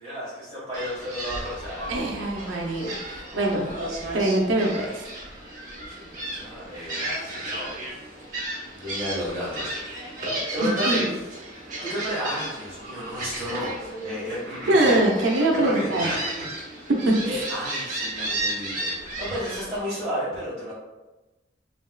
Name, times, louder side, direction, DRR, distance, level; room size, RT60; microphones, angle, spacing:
voice 1, 0.0-1.9 3.3-3.7 5.9-7.9 8.7-11.3 11.6-15.0 15.5-16.9 17.2-20.7, equal, 15° right, -13 dB, 1.3 m, -33 dB
Gull seagull, 0.7-19.8, right 1 dB, 40° right, 0.9 m, -33 dB
voice 2, 1.9-3.7 4.1-5.1 10.6-11.1 14.7-16.1 16.9-17.5, right 1 dB, 80° right, 0 dB, 0.6 m, -23 dB
3.4 x 3.1 x 2.2 m, 1.1 s
head